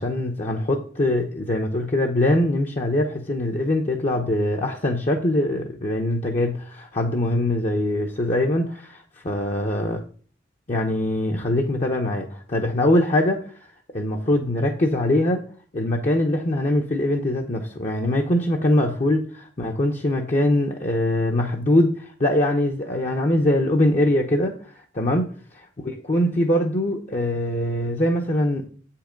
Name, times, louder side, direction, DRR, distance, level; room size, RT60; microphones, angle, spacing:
voice 1, 0.0-10.0 10.7-13.5 13.9-15.4 15.7-24.6 24.9-25.3 26.0-28.6, left 1 dB, 40° left, 1 dB, 0.9 m, -22 dB
7.7 x 5.7 x 5.2 m, 0.43 s
head